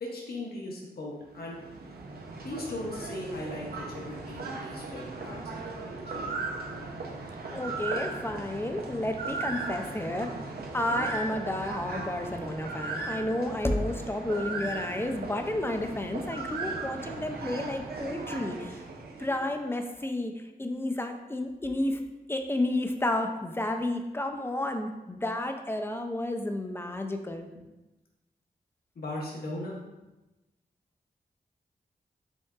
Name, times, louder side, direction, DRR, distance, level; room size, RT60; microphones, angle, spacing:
voice 1, 0.0-1.6 2.4-6.2 29.0-29.8, left 1 dB, 75° left, -3 dB, 1.1 m, -38 dB
sound 1, 1.2-19.6, right 3 dB, 75° right, 0.6 m, -37 dB
voice 2, 7.5-10.3 10.7-18.8 19.2-22.0 22.3-27.5, left 1 dB, 15° left, 5 dB, 0.5 m, -31 dB
5.3 x 3.4 x 2.4 m, 1.0 s
cardioid pair, 45°, 16 cm